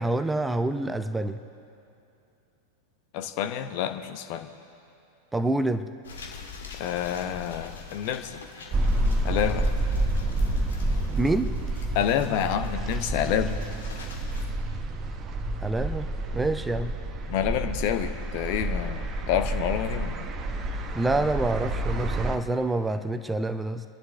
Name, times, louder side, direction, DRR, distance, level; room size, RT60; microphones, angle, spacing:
voice 1, 0.0-1.4 5.3-5.9 11.2-11.5 15.6-16.1 16.3-16.9 21.0-23.8, right 2 dB, 10° right, 11 dB, 0.6 m, -27 dB
voice 2, 3.1-4.5 6.8-8.4 9.2-9.7 11.9-13.6 17.2-20.3, left 10 dB, 45° left, 8 dB, 0.9 m, -28 dB
sound 1, 6.0-14.5, left 5 dB, 65° left, 1.7 m, -43 dB
sound 2, 8.7-22.4, right 1 dB, 30° right, 0.9 m, -29 dB
28.5 x 11.0 x 3.3 m, 2.7 s
figure-of-eight pair, 90°, 0 cm